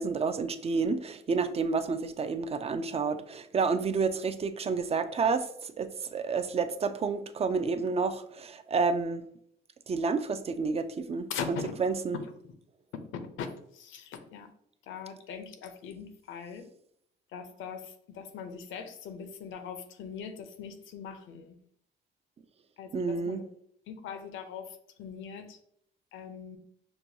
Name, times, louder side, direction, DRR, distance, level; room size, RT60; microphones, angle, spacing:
voice 1, 0.0-9.2 9.9-12.2 22.9-23.4, right 4 dB, 30° right, 0.4 m, -30 dB
voice 2, 11.3-11.7 12.4-12.5 13.1-13.5 13.7-14.5 14.8-16.7 17.3-21.6 22.8-23.4 23.9-25.6 26.1-26.6, left 7 dB, 80° left, 0.6 m, -41 dB
5.9 x 2.2 x 2.7 m
cardioid pair, 90°, 20 cm